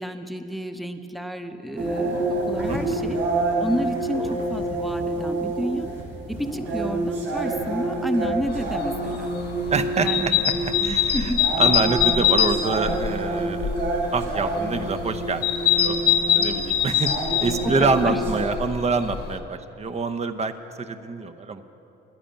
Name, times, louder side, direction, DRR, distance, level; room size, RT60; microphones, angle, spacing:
voice 1, 0.0-3.2 3.6-5.9 6.3-9.3 10.0-10.4 10.8-11.4 17.6-18.2, equal, ahead, 7 dB, 0.8 m, -30 dB
sound 1, 1.8-18.4, right 2 dB, 80° right, 3.9 m, -28 dB
sound 2, 8.5-19.4, left 9 dB, 55° left, 1.2 m, -24 dB
voice 2, 9.7-11.3 11.6-13.7 14.1-21.6, right 4 dB, 35° right, 8 dB, 0.8 m, -26 dB
10.5 x 10.5 x 8.8 m, 2.9 s
cardioid pair, 90°, 20 cm